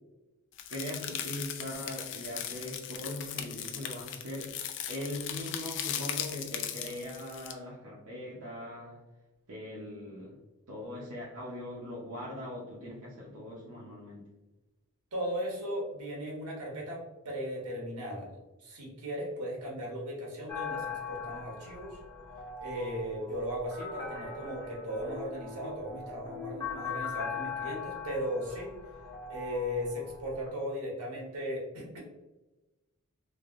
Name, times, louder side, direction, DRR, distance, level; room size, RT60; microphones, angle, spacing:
sound 1, 0.6-7.5, left 9 dB, 55° left, 0.4 m, -38 dB
voice 1, 0.7-4.5 4.9-9.0 9.5-10.4 10.7-14.3, left 1 dB, 65° right, -6 dB, 0.7 m, -40 dB
voice 2, 15.1-18.3 18.6-22.0 22.6-28.7 29.3-32.0, equal, 80° right, -2 dB, 1.2 m, -37 dB
sound 2, 20.5-30.5, left 5 dB, 15° left, 0.7 m, -41 dB
3.3 x 2.7 x 2.5 m, 1.1 s
head